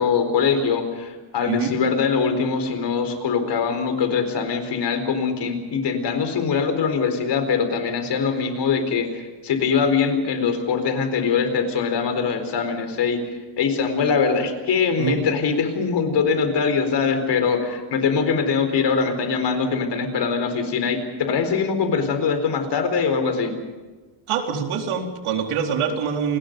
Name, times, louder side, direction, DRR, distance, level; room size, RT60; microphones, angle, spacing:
voice 1, 0.0-13.2 13.6-23.6, left 5 dB, 55° left, 8 dB, 4.4 m, -22 dB
voice 2, 24.3-26.4, right 7 dB, 90° right, 2 dB, 4.1 m, -24 dB
29.0 x 20.5 x 5.4 m, 1.3 s
cardioid pair, 160°, 49 cm